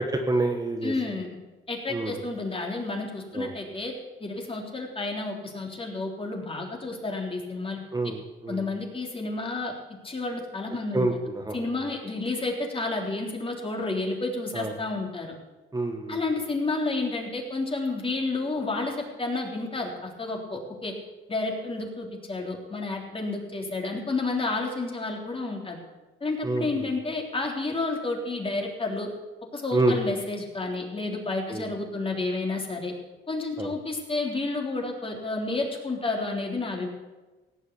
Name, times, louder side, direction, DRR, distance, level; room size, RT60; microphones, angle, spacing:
voice 1, 0.3-0.9 1.9-2.2 3.3-3.5 7.9-8.6 10.9-11.6 14.5-14.7 15.7-16.2 26.4-26.9 29.7-30.0 31.5-31.6 33.6-33.7, right 2 dB, 20° right, 3 dB, 1.5 m, -27 dB
voice 2, 0.8-1.3 1.7-3.9 4.2-7.8 8.5-9.7 10.0-11.1 11.5-15.3 16.1-20.9 21.3-25.8 26.2-29.1 29.5-32.9 33.3-36.9, left 3 dB, 25° left, 1 dB, 3.6 m, -30 dB
17.0 x 7.8 x 8.3 m, 1.2 s
cardioid pair, 90°, 20 cm